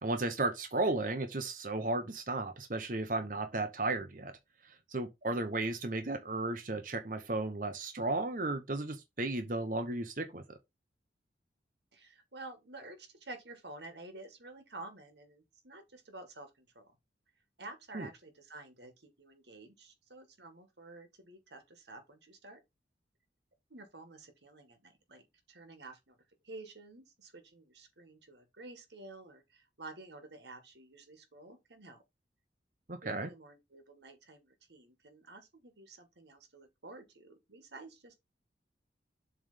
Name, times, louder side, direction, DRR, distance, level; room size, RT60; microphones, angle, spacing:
voice 1, 0.0-4.3 4.6-10.4 17.9-18.1 32.9-33.3, right 2 dB, 50° right, 0.9 m, -34 dB
voice 2, 11.9-17.0 17.6-22.6 23.7-25.2 25.5-26.2 26.4-32.0 33.0-38.2, right 2 dB, 75° right, 1.8 m, -51 dB
7.4 x 3.5 x 5.1 m
head